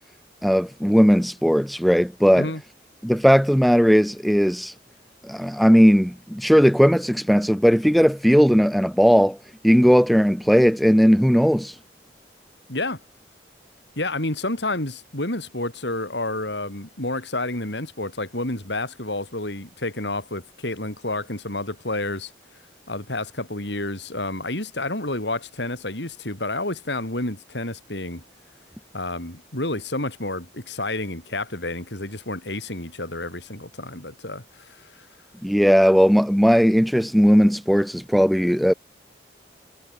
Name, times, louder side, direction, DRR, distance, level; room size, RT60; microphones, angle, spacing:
voice 1, 0.4-2.5 3.0-4.7 5.2-9.4 9.6-11.7 35.4-38.7, equal, ahead, 1.0 m, -17 dB
voice 2, 14.0-22.3 22.9-28.2 28.9-35.1, left 2 dB, 75° left, 6.3 m, -30 dB
head